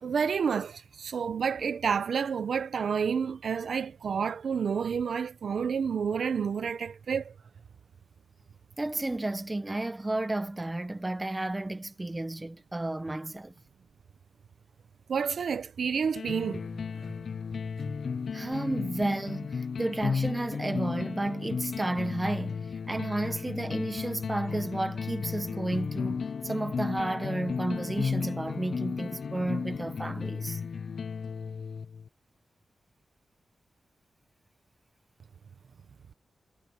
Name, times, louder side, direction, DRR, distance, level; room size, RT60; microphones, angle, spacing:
voice 1, 0.0-7.3 15.1-16.6, right 6 dB, 65° right, 0.9 m, -29 dB
voice 2, 8.8-13.5 18.3-30.6, right 2 dB, 15° right, 1.0 m, -32 dB
sound 1, 16.2-32.1, left 5 dB, 60° left, 0.4 m, -34 dB
wide cardioid pair, 160°, 0 cm